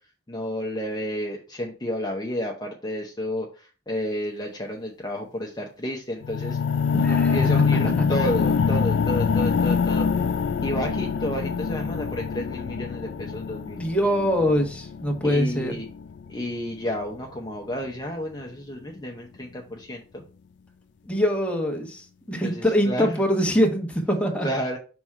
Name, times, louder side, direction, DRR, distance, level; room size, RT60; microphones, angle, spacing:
voice 1, 0.3-6.6 7.0-10.1 10.6-13.8 15.2-15.9 16.3-20.2 22.4-23.2 24.4-24.8, equal, 25° left, 0.7 m, -31 dB
sound 1, 6.2-16.3 17.0-17.1, left 6 dB, 70° left, 0.3 m, -24 dB
voice 2, 6.9-8.1 13.7-15.8 21.0-24.5, equal, 5° left, 1.1 m, -24 dB
6.0 x 3.7 x 4.4 m
head